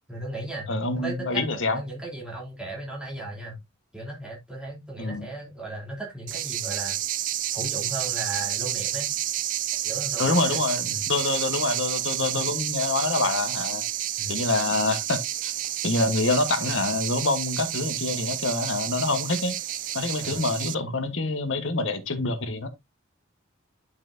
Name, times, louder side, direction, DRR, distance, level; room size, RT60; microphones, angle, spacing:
voice 1, 0.1-0.7 0.9-3.6 3.9-7.0 7.5-9.1 9.8-10.6 10.8-11.0 14.2-14.3 20.2-20.4 22.1-22.2, right 2 dB, 5° right, 3.3 m, -36 dB
voice 2, 0.7-1.8 5.0-5.3 10.2-13.8 14.3-15.5 15.8-19.6 19.9-22.7, left 2 dB, 65° left, 1.4 m, -26 dB
sound 1, 6.3-20.7, right 13 dB, 40° right, 0.4 m, -30 dB
10.5 x 5.8 x 2.7 m
head